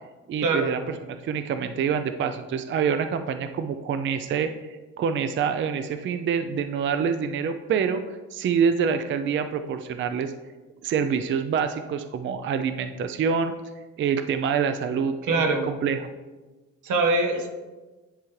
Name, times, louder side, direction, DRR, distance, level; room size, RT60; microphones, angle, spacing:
voice 1, 0.3-4.5 5.0-8.0 8.3-10.3 10.8-13.5 14.0-16.1, right 6 dB, 40° right, 9 dB, 0.4 m, -26 dB
voice 2, 15.3-15.6 16.8-17.5, right 3 dB, 80° right, 5 dB, 1.0 m, -23 dB
10.0 x 3.6 x 3.1 m, 1.2 s
cardioid pair, 90°, 30 cm